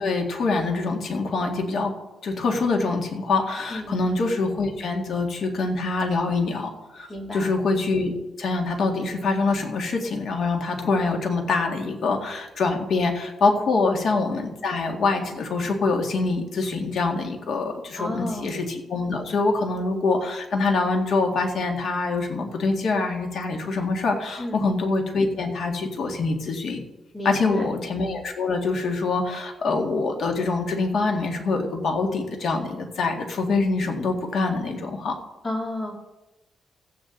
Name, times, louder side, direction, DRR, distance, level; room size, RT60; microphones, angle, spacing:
voice 1, 0.0-1.9 2.2-7.1 7.3-8.1 8.4-26.8 27.2-35.2, left 3 dB, 60° left, 3 dB, 2.0 m, -25 dB
voice 2, 7.1-7.5 13.7-13.9 18.0-18.5 24.4-24.6 27.1-27.7 35.4-35.9, left 1 dB, 30° left, 0 dB, 2.7 m, -31 dB
15.0 x 8.6 x 3.9 m, 1.0 s
cardioid pair, 105°, 0 cm